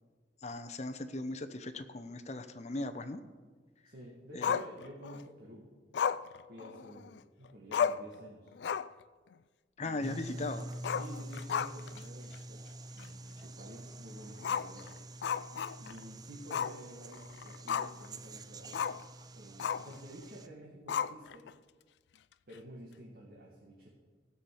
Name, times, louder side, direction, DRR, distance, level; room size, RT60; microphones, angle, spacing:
voice 1, 0.4-3.2 4.3-4.5 9.8-10.7, left 2 dB, 40° left, 9 dB, 0.7 m, -38 dB
voice 2, 3.9-5.7 6.5-8.6 9.8-10.2 10.9-14.9 15.8-18.8 19.3-21.5 22.5-23.9, equal, 55° right, -3 dB, 1.8 m, -51 dB
Growling, 4.4-5.2 5.9-7.2 7.5-7.6 7.7-8.1 8.5-9.0 9.3-9.4 10.8-12.0 12.3-12.4 13.0-13.1 14.4-16.0 16.5-16.8 17.1-18.1 18.7-19.0 19.6-20.0 20.9-21.5, left 7 dB, 70° left, 0.3 m, -34 dB
sound 1, 10.0-20.5, right 1 dB, 20° right, 0.5 m, -47 dB
16.0 x 5.8 x 7.0 m, 1.4 s
head